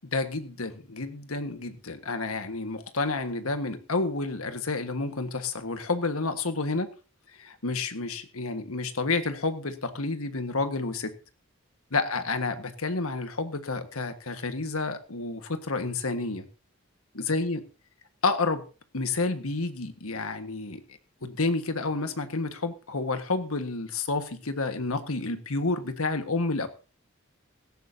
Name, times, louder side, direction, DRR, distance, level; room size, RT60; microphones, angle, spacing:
voice 1, 0.1-6.9 7.4-11.1 11.9-16.4 17.1-17.6 18.2-18.7 18.9-20.8 21.2-26.7, left 3 dB, 85° left, 8 dB, 1.6 m, -30 dB
17.0 x 15.0 x 2.8 m, 0.34 s
head